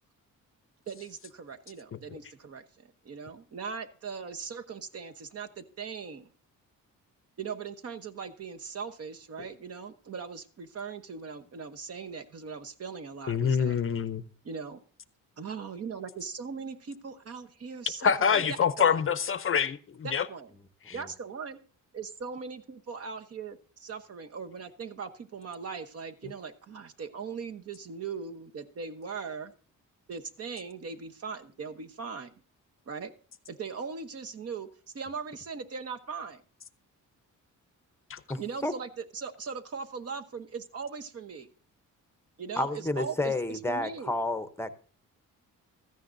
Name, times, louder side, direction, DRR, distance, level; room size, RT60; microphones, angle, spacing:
voice 1, 0.9-6.3 7.4-13.8 14.4-14.8 15.4-18.4 18.8-19.0 20.0-20.5 20.9-21.6 21.9-29.5 30.1-32.3 32.9-33.1 33.5-34.7 34.9-36.4 38.4-41.5 42.4-44.1, right 5 dB, 50° right, 1.0 m, -39 dB
voice 2, 13.3-14.2 18.0-20.3 20.9-21.0 38.1-38.2, left 7 dB, 40° left, 0.6 m, -26 dB
voice 3, 38.3-38.7 42.6-44.7, left 2 dB, 10° left, 0.7 m, -31 dB
16.0 x 14.0 x 2.6 m
cardioid pair, 130°, 32 cm